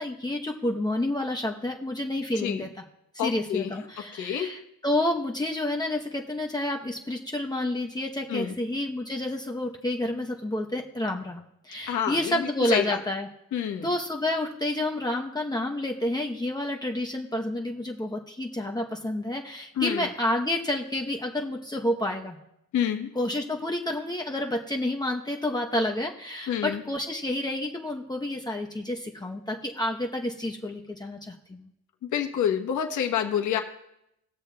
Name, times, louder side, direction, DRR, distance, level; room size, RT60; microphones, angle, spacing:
voice 1, 0.0-2.8 3.2-13.3 13.8-22.4 23.1-31.7, left 1 dB, 15° left, 0 dB, 0.9 m, -29 dB
voice 2, 3.2-3.7 4.1-4.5 8.3-8.6 11.9-13.0 13.5-13.9 19.8-20.1 22.7-23.1 26.5-26.8 32.0-33.6, left 9 dB, 75° left, 4 dB, 1.2 m, -28 dB
20.0 x 6.7 x 2.3 m, 0.82 s
cardioid pair, 90°, 30 cm